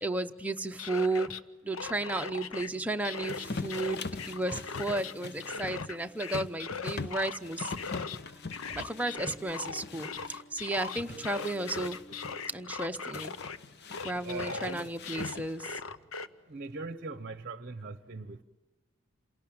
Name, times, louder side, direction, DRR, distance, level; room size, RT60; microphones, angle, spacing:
voice 1, 0.0-1.3 1.6-7.7 8.7-12.0 12.5-13.4 14.0-15.7, right 2 dB, 5° right, 5 dB, 0.8 m, -33 dB
sound 1, 0.6-1.4 1.7-2.7 3.0-5.1 5.4-8.2 8.5-13.6 13.9-16.3, left 5 dB, 80° left, 0.8 m, -39 dB
sound 2, 1.6-16.8, right 2 dB, 35° left, 5.6 m, -57 dB
sound 3, 3.3-10.4 10.8-12.3 13.1-15.7, left 4 dB, 55° left, 0.8 m, -42 dB
voice 2, 11.0-11.7 12.3-12.5 14.2-14.9 16.5-18.4, right 3 dB, 40° right, 12 dB, 0.9 m, -41 dB
27.5 x 18.0 x 8.8 m, 1.1 s
head